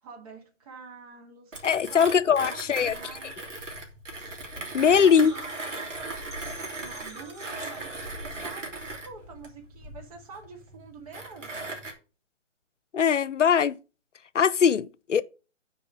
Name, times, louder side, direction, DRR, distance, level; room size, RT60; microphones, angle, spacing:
voice 1, 0.0-1.6 1.9-3.5 5.0-6.5 6.8-11.8, right 4 dB, 30° right, 2.3 m, -47 dB
Mechanisms, 1.5-11.9, right 2 dB, 75° right, 3.2 m, -38 dB
voice 2, 1.6-2.9 4.7-5.3 12.9-13.8 14.3-15.2, left 7 dB, 75° left, 0.6 m, -21 dB
sound 1, 4.4-10.2, equal, 10° right, 3.8 m, -48 dB
6.9 x 4.7 x 6.2 m
figure-of-eight pair, 150°, 37 cm